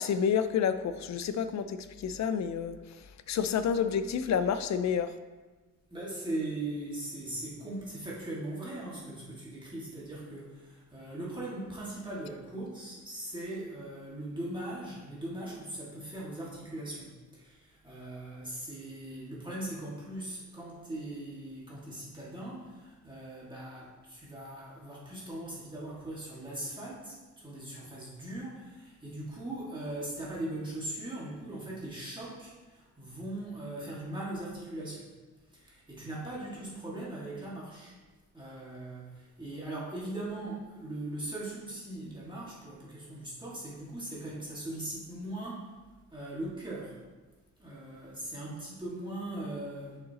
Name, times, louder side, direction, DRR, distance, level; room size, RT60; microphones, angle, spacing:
voice 1, 0.0-2.8 3.3-5.1, left 7 dB, 65° left, 11 dB, 0.5 m, -29 dB
voice 2, 5.9-35.1 35.5-37.9 38.3-45.7 46.1-47.0 47.6-50.0, right 1 dB, 15° right, -7 dB, 1.9 m, -40 dB
7.8 x 6.5 x 2.9 m, 1.3 s
wide cardioid pair, 125°, 30 cm